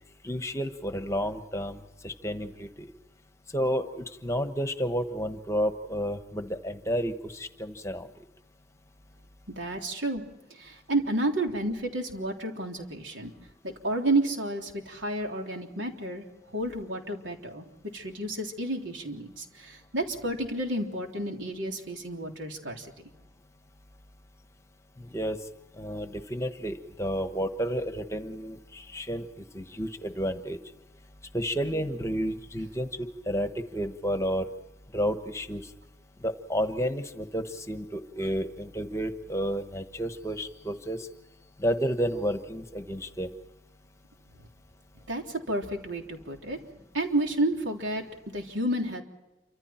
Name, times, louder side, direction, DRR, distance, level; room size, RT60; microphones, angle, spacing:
voice 1, 0.2-2.9 3.5-8.2 25.0-25.5 25.7-30.6 31.3-34.5 34.9-35.7 36.2-41.1 41.6-43.3, equal, 15° left, 8 dB, 1.2 m, -31 dB
voice 2, 9.5-10.2 10.5-13.3 13.6-16.2 16.5-17.7 17.9-22.9 45.1-46.6 46.9-49.0, right 1 dB, 85° right, 2 dB, 3.5 m, -31 dB
28.5 x 25.5 x 4.4 m, 0.99 s
head